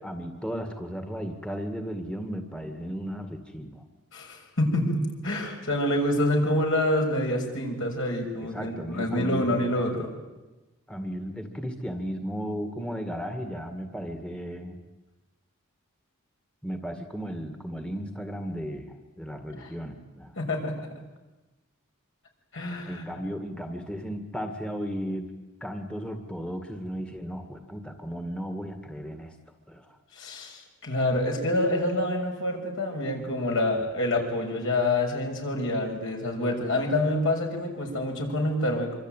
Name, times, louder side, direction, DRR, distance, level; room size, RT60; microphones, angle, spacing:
voice 1, 0.0-3.9 8.4-9.6 10.9-14.8 16.6-20.4 22.9-25.3 25.6-29.4 29.7-30.0, equal, 5° left, 5 dB, 2.0 m, -35 dB
voice 2, 4.1-10.1 19.6-19.7 20.4-20.9 22.5-23.0 30.2-39.0, left 1 dB, 65° left, 2 dB, 6.5 m, -27 dB
25.5 x 25.5 x 9.2 m, 1.1 s
head